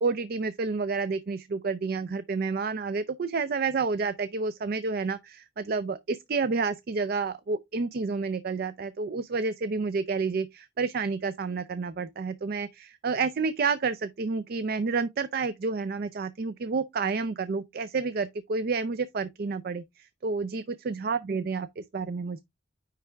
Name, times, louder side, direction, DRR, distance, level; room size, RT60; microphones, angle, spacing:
voice 1, 0.0-22.4, right 4 dB, 55° right, 0.4 m, -30 dB
9.6 x 3.4 x 3.3 m
head